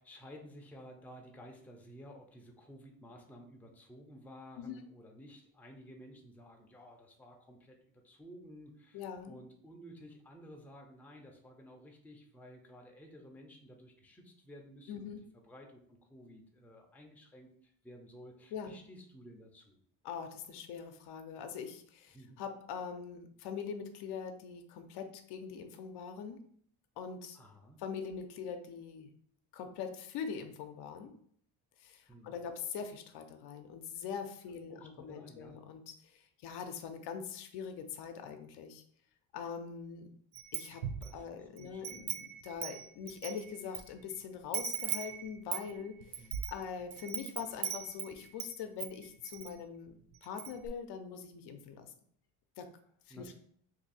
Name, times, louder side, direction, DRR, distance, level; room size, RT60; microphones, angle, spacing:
voice 1, 0.0-15.1 15.5-19.8 22.1-22.4 27.3-27.8 32.1-32.4 34.7-35.6 41.0-42.2 46.2-46.4 53.1-53.3, equal, 5° left, 1 dB, 0.5 m, -54 dB
voice 2, 8.9-9.4 14.9-15.2 18.5-18.8 20.0-26.4 27.0-27.4 27.8-29.1 29.5-31.1 31.8-38.8 39.3-40.1 40.5-40.8 41.1-51.9 52.6-52.7 53.1-53.3, left 6 dB, 70° left, 6 dB, 0.6 m, -43 dB
Wind chime, 40.4-41.2 41.6-43.8 44.1-44.2 44.5-48.5 48.8-49.5 49.9-50.0 50.2-50.7, right 9 dB, 80° right, 0.5 m, -39 dB
2.7 x 2.7 x 4.0 m, 0.62 s
cardioid pair, 110°, 41 cm